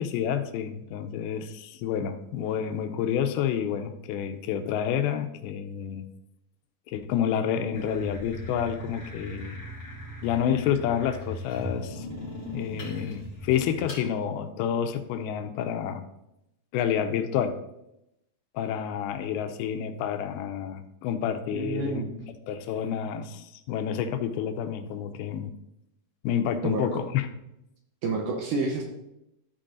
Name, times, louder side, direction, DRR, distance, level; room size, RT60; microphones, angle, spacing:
voice 1, 0.0-6.1 6.9-9.6 10.2-12.1 12.5-16.0 16.7-17.6 18.5-22.0 22.5-25.5 26.2-27.3, left 8 dB, 85° left, 7 dB, 2.5 m, -29 dB
sound 1, 7.7-14.0, left 1 dB, 30° left, 2.9 m, -39 dB
voice 2, 21.5-22.2 26.6-27.0 28.0-28.8, right 3 dB, 70° right, 2 dB, 2.0 m, -29 dB
13.0 x 4.5 x 3.8 m, 0.86 s
omnidirectional pair, 4.4 m